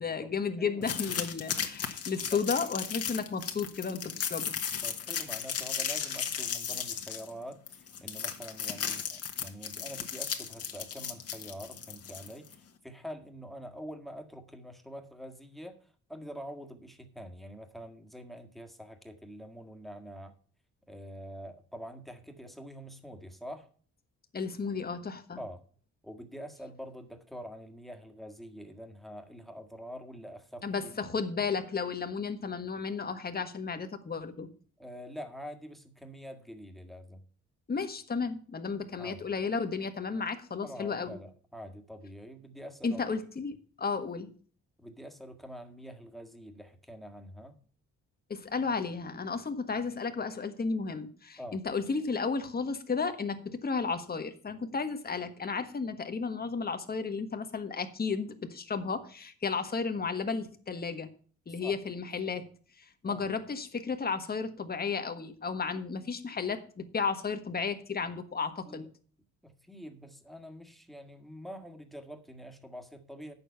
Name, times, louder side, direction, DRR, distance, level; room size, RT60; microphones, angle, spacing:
voice 1, 0.0-4.5 24.3-25.4 30.6-34.5 37.7-41.2 42.8-44.3 48.3-61.1 61.5-62.5 62.8-68.8, left 5 dB, 30° left, 7 dB, 1.5 m, -33 dB
sound 1, 0.8-12.5, left 8 dB, 55° left, 1.6 m, -35 dB
voice 2, 4.8-20.3 20.9-23.7 25.4-25.6 26.0-31.0 34.8-37.2 39.0-39.2 40.6-43.1 44.8-47.6 51.4-51.6 61.6-61.8 63.0-63.2 68.7-68.9 69.4-73.3, equal, ahead, 5 dB, 1.7 m, -45 dB
8.9 x 7.1 x 5.7 m, 0.43 s
cardioid pair, 90°, 30 cm